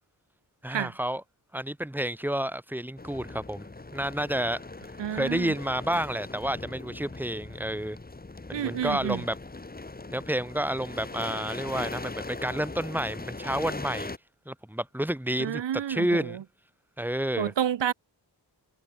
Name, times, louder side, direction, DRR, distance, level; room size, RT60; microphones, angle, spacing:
voice 1, 0.6-1.2 1.5-3.7 3.9-4.6 5.1-8.0 8.5-9.3 10.1-14.1 14.4-16.4 17.0-17.5, right 1 dB, 5° right, 4.9 m, -30 dB
sound 1, 3.0-14.2, left 3 dB, 20° left, 4.7 m, -40 dB
voice 2, 5.0-5.5 8.5-9.2 15.4-16.4 17.4-17.9, right 9 dB, 85° right, 1.5 m, -29 dB
wide cardioid pair, 160°, 42 cm